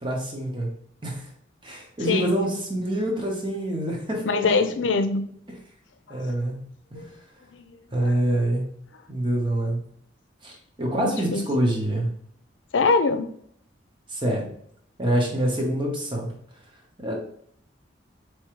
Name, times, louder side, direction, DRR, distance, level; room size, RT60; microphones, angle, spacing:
voice 1, 0.0-0.7 1.0-1.3 1.6-4.7 6.1-6.6 6.9-7.1 7.9-8.7 9.1-9.8 10.4-10.5 10.8-12.1 14.1-14.5 15.0-16.3 17.0-17.2, right 1 dB, 25° right, 0 dB, 1.1 m, -26 dB
voice 2, 4.2-5.3 6.1-6.2 6.9-7.1 7.5-7.7 11.0-11.4 12.7-13.3, left 4 dB, 85° left, 9 dB, 0.5 m, -23 dB
4.5 x 3.1 x 3.1 m, 0.65 s
head